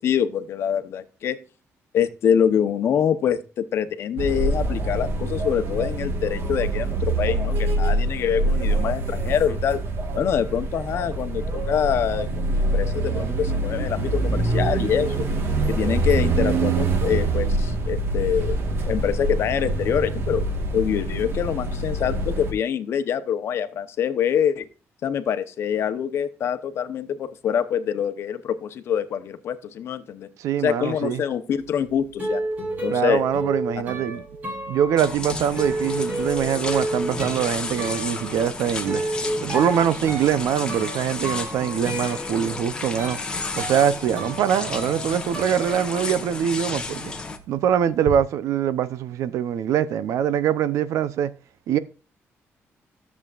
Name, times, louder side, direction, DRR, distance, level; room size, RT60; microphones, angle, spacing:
voice 1, 0.0-1.4 1.9-9.8 10.1-15.3 15.7-18.6 18.8-20.4 20.7-24.7 25.0-30.3 30.6-32.4 32.8-33.2, left 8 dB, 55° left, 0.9 m, -25 dB
sound 1, 4.2-22.5, right 2 dB, 50° right, 1.5 m, -25 dB
voice 2, 30.4-31.2 32.9-34.2 34.7-39.0 39.4-43.2 43.6-47.1 47.5-51.3 51.7-51.8, right 9 dB, 85° right, 0.7 m, -23 dB
sound 2, 31.6-46.4 46.7-48.2, right 1 dB, 35° right, 3.5 m, -32 dB
sound 3, 35.0-47.4, left 3 dB, 15° left, 1.0 m, -33 dB
13.5 x 7.3 x 2.5 m
cardioid pair, 175°, 5 cm